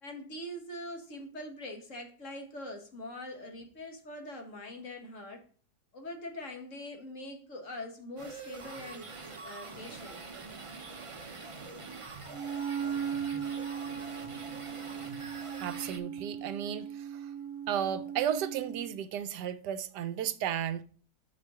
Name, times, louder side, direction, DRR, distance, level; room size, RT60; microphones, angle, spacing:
voice 1, 0.0-5.4 5.9-9.1 9.4-10.2, left 1 dB, 50° left, 1.7 m, -43 dB
sound 1, 8.2-16.0, right 4 dB, 35° right, 0.5 m, -45 dB
Wind instrument woodwind instrument, 12.3-19.0, right 8 dB, 50° right, 1.5 m, -38 dB
voice 2, 15.6-17.3 17.7-20.8, right 9 dB, 80° right, 1.2 m, -34 dB
6.5 x 5.9 x 4.7 m
omnidirectional pair, 1.9 m